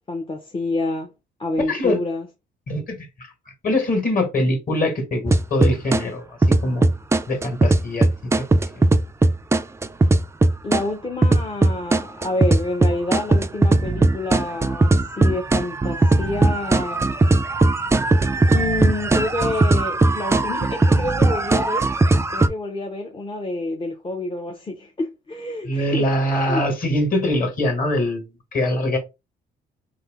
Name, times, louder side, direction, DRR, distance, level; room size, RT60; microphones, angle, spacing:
voice 1, 0.1-1.1 1.4-2.3 10.6-17.1 18.5-21.9 22.3-26.1 26.3-26.6, left 2 dB, 25° left, 0.7 m, -28 dB
voice 2, 1.7-2.0 2.7-3.3 3.6-6.3 6.6-6.9 7.3-8.3 25.6-29.0, left 1 dB, 45° left, 1.8 m, -23 dB
sound 1, 5.3-6.0 6.4-10.8 11.2-22.5, right 2 dB, 15° right, 0.3 m, -18 dB
3.2 x 2.7 x 3.6 m
cardioid pair, 90°, 20 cm